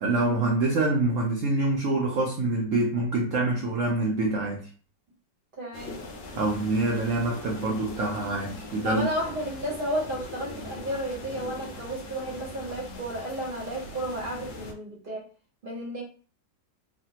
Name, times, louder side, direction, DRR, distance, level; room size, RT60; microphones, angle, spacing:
voice 1, 0.0-4.7 6.3-9.1, right 2 dB, 85° right, -1 dB, 0.7 m, -26 dB
voice 2, 5.6-6.0 8.8-15.3 15.6-16.0, equal, 45° right, -2 dB, 0.7 m, -32 dB
sound 1, 5.7-14.7, left 2 dB, 80° left, 1.3 m, -41 dB
3.2 x 2.2 x 2.8 m, 0.39 s
omnidirectional pair, 2.0 m